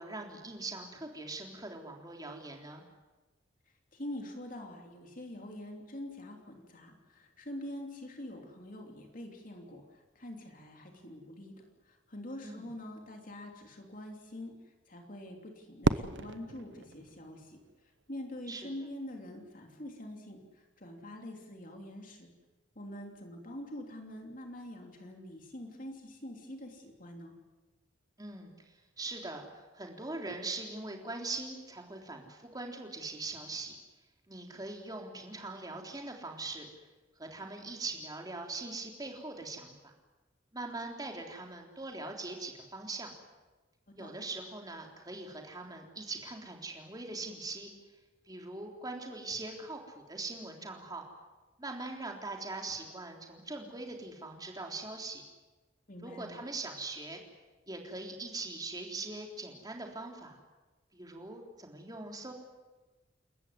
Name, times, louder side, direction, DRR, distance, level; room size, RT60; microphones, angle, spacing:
voice 1, 0.0-2.8 12.4-12.7 18.5-18.7 28.2-29.5 29.7-33.8 34.3-36.7 37.2-39.9 40.5-43.1 44.0-47.7 48.3-51.0 51.6-55.2 56.0-57.2 57.7-60.4 60.9-62.3, right 3 dB, 20° right, 2 dB, 3.6 m, -41 dB
voice 2, 3.9-17.6 18.1-22.3 22.7-27.3 43.9-44.1 55.9-56.4, left 1 dB, 45° left, 2 dB, 3.1 m, -45 dB
Fireworks, 15.8-18.0, right 3 dB, 65° right, 0.8 m, -34 dB
28.5 x 14.5 x 9.7 m, 1.2 s
head